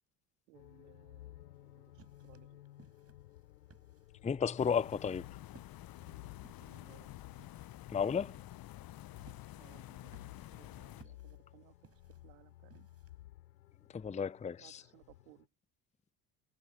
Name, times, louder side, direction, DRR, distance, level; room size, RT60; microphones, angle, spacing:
sound 1, 0.5-15.5, left 15 dB, 85° left, 4.6 m, -56 dB
voice 1, 0.5-2.7 6.6-7.2 9.6-10.1 10.5-12.9 14.6-15.5, right 24 dB, 75° right, 2.3 m, -63 dB
sound 2, 1.5-13.2, right 5 dB, 30° right, 6.8 m, -64 dB
voice 2, 4.2-5.4 7.9-8.4 13.9-14.8, left 6 dB, 15° left, 0.6 m, -33 dB
sound 3, 4.6-11.0, left 15 dB, 45° left, 0.9 m, -50 dB
hypercardioid pair, 60°, 50 cm